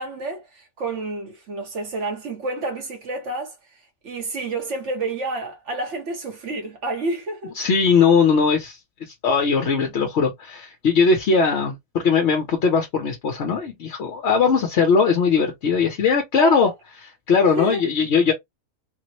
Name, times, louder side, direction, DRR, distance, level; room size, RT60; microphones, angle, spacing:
voice 1, 0.0-3.5 4.0-7.5 16.4-16.7 17.6-17.8, right 2 dB, 60° right, 1.1 m, -29 dB
voice 2, 7.6-16.7 17.3-18.3, left 5 dB, 55° left, 0.9 m, -19 dB
3.3 x 2.0 x 2.9 m
omnidirectional pair, 1.5 m